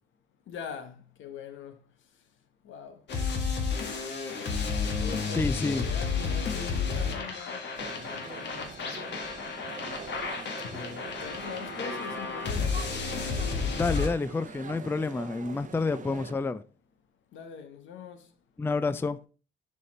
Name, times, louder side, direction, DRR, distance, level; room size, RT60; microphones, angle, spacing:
voice 1, 0.5-1.8 2.6-3.0 5.0-7.6 7.9-9.2 10.6-12.8 17.3-18.2, left 6 dB, 80° left, 1.2 m, -42 dB
sound 1, 3.1-14.1, left 5 dB, 65° left, 1.7 m, -32 dB
voice 2, 5.3-5.9 13.7-16.6 18.6-19.2, left 3 dB, 10° left, 0.4 m, -29 dB
sound 2, 7.7-16.3, right 6 dB, 40° right, 0.8 m, -44 dB
6.9 x 5.0 x 4.2 m
cardioid pair, 90°, 20 cm